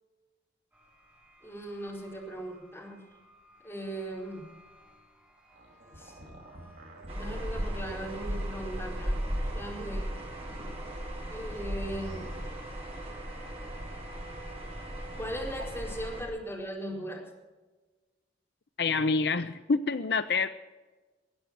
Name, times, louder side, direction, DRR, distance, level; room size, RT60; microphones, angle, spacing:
sound 1, 0.7-10.9, right 1 dB, 10° right, 5.0 m, -58 dB
voice 1, 1.4-3.0 3.6-4.5 6.0-6.1 7.1-9.3 9.5-10.1 11.3-12.3 15.2-17.3, right 1 dB, 15° left, -3 dB, 4.5 m, -38 dB
sound 2, 5.4-8.2 8.9-11.0 11.4-12.3, right 1 dB, 70° right, 5.3 m, -48 dB
sound 3, 7.1-16.2, equal, 35° right, 3.9 m, -36 dB
voice 2, 18.8-20.5, left 4 dB, 65° left, 11 dB, 0.6 m, -27 dB
21.0 x 9.0 x 7.5 m, 1.2 s
head